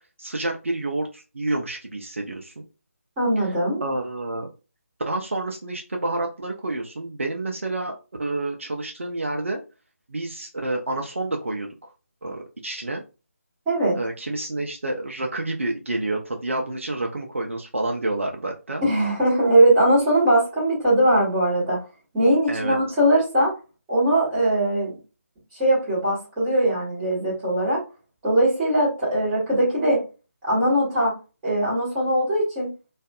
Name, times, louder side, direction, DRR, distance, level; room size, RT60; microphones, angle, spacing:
voice 1, 0.2-2.6 3.8-4.5 5.1-7.9 8.2-9.6 10.1-11.9 12.2-13.0 13.9-18.8 22.5-22.8, right 2 dB, 60° right, 1 dB, 0.5 m, -29 dB
voice 2, 3.2-3.8 13.7-14.0 18.8-21.8 22.1-23.5 23.9-24.9 25.5-27.8 28.2-30.0 30.4-31.1 31.4-32.7, right 1 dB, 10° right, -8 dB, 1.1 m, -20 dB
2.5 x 2.4 x 2.2 m, 0.31 s
figure-of-eight pair, 155°, 8 cm